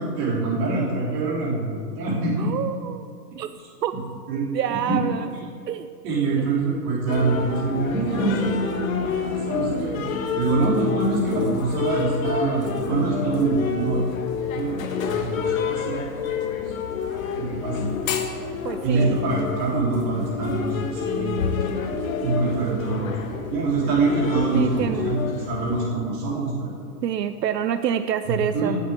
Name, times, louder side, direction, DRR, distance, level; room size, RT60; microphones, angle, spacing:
voice 1, 0.0-2.5 4.3-4.4 4.9-5.0 6.0-10.0 10.3-14.0 14.5-16.0 17.4-17.9 18.8-21.9 22.2-23.1 23.5-26.7 28.2-28.8, right 3 dB, 25° right, -5 dB, 3.2 m, -25 dB
voice 2, 2.4-3.1 3.4-3.5 3.8-3.9 4.5-5.3 5.7-5.9 6.4-6.5 18.6-19.2 24.5-25.1 27.0-28.8, right 9 dB, 80° right, 10 dB, 0.8 m, -27 dB
sound 1, 7.1-25.9, left 5 dB, 55° left, 1.4 m, -28 dB
9.3 x 7.8 x 7.8 m, 2.4 s
hypercardioid pair, 160°, 49 cm